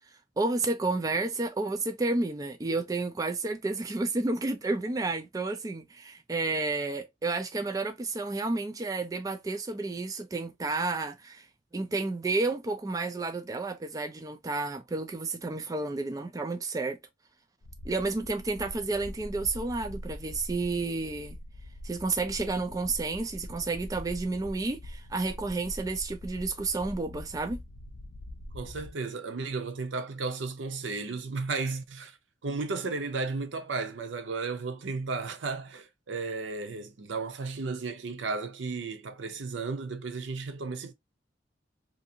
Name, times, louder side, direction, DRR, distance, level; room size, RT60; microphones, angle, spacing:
voice 1, 0.4-11.5 11.7-17.0 17.8-21.4 21.8-27.6, right 3 dB, 20° right, 0.3 m, -31 dB
sound 1, 17.6-28.9, left 1 dB, 70° left, 0.5 m, -43 dB
voice 2, 28.5-32.2 32.4-40.9, right 4 dB, 80° right, 0.6 m, -34 dB
2.6 x 2.4 x 2.7 m
head